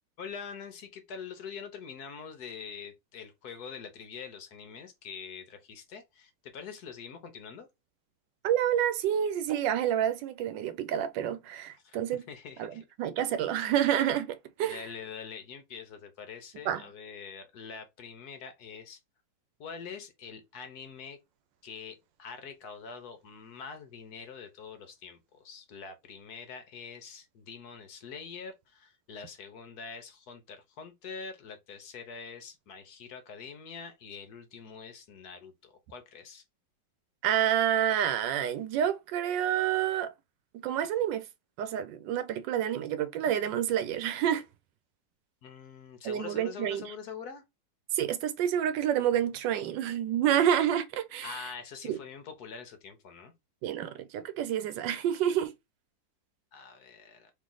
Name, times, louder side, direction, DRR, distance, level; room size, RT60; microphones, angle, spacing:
voice 1, 0.2-7.7 11.8-12.8 14.6-19.0 19.6-21.2 21.6-36.4 45.4-47.4 51.2-53.3 56.5-57.3, left 6 dB, 65° left, 1.2 m, -44 dB
voice 2, 8.4-12.2 12.6-14.8 16.7-16.8 37.2-40.1 40.5-41.2 41.6-44.4 46.0-46.9 47.9-51.5 51.8-52.0 53.6-55.5, right 10 dB, 80° right, 1.2 m, -28 dB
3.2 x 3.1 x 3.8 m
omnidirectional pair, 2.0 m